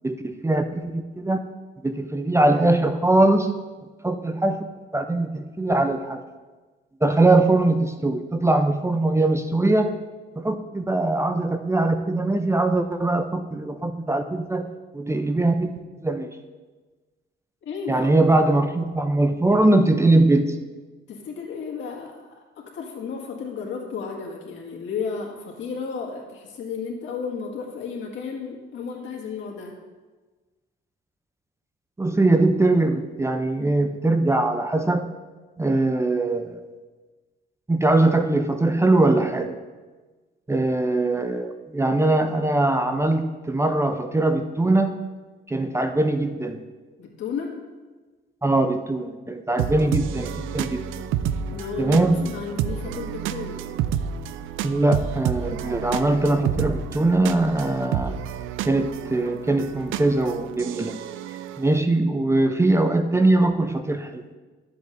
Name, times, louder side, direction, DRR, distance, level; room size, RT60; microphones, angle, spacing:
voice 1, 0.0-1.4 1.8-3.5 4.0-4.6 4.9-6.2 7.0-9.9 10.4-14.6 14.9-15.7 16.0-16.3 17.9-20.6 32.0-35.1 35.6-36.7 37.7-39.5 40.5-44.9 45.5-46.6 48.4-50.8 51.8-52.2 54.6-58.2 58.6-61.0 61.6-64.2, right 2 dB, 15° right, 8 dB, 0.6 m, -21 dB
voice 2, 17.6-18.1 21.1-29.7 47.0-47.6 49.6-49.8 51.5-53.6, left 5 dB, 75° left, -1 dB, 2.0 m, -33 dB
sound 1, 49.6-61.8, right 9 dB, 90° right, 0.4 m, -30 dB
13.0 x 7.7 x 2.7 m, 1.3 s
cardioid pair, 90°, 20 cm